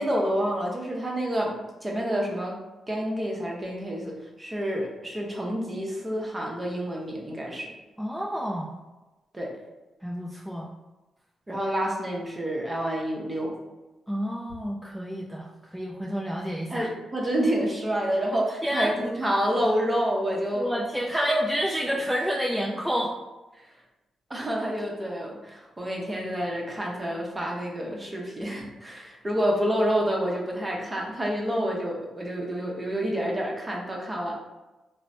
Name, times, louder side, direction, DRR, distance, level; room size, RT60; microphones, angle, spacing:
voice 1, 0.0-1.5 1.8-2.6 2.9-7.7 9.3-9.5 11.5-13.6 16.7-20.7 21.1-21.4 24.3-34.3, equal, 25° right, -1 dB, 0.7 m, -28 dB
voice 2, 8.0-8.8 10.0-10.7 14.1-16.9 18.6-19.1 20.5-23.1, equal, ahead, -3 dB, 0.4 m, -29 dB
3.1 x 2.0 x 2.6 m, 1.1 s
cardioid pair, 65°, 0 cm